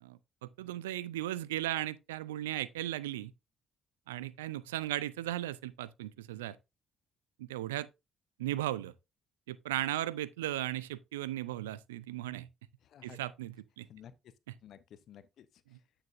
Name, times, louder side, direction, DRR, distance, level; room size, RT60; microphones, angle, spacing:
voice 1, 0.0-3.3 4.1-6.6 7.4-7.9 8.4-8.9 9.5-12.5 13.0-13.9 15.7-15.8, right 14 dB, 85° right, 0.4 m, -36 dB
voice 2, 12.8-13.2 13.9-14.3 14.6-15.8, left 9 dB, 65° left, 0.7 m, -54 dB
8.9 x 6.7 x 2.6 m
hypercardioid pair, 50°, 0 cm